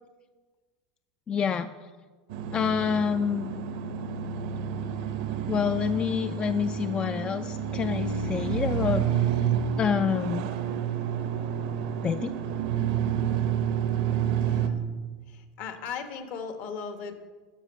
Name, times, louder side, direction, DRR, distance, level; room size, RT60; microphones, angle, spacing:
voice 1, 1.3-1.7 2.5-3.5 5.5-9.1 9.8-10.5 12.0-12.3, left 7 dB, 30° left, 11 dB, 0.4 m, -27 dB
sound 1, 2.3-14.7, right 8 dB, 75° right, 0.9 m, -29 dB
voice 2, 14.1-14.9 15.3-17.2, left 6 dB, 60° left, 8 dB, 1.3 m, -38 dB
12.5 x 5.4 x 6.5 m, 1.4 s
supercardioid pair, 105°, 4 cm